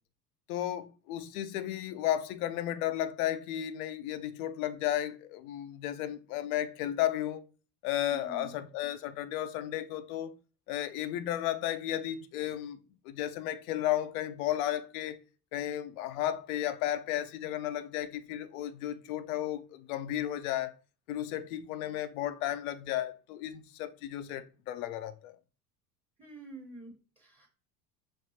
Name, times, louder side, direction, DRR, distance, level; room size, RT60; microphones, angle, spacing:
voice 1, 0.5-7.4 7.8-10.3 10.7-12.8 13.0-15.2 15.5-20.7 21.1-25.4, left 12 dB, 65° left, 0.7 m, -34 dB
voice 2, 8.0-8.5 26.2-27.5, right 2 dB, 10° right, 1.1 m, -48 dB
5.3 x 2.6 x 2.8 m
hypercardioid pair, 70°, 46 cm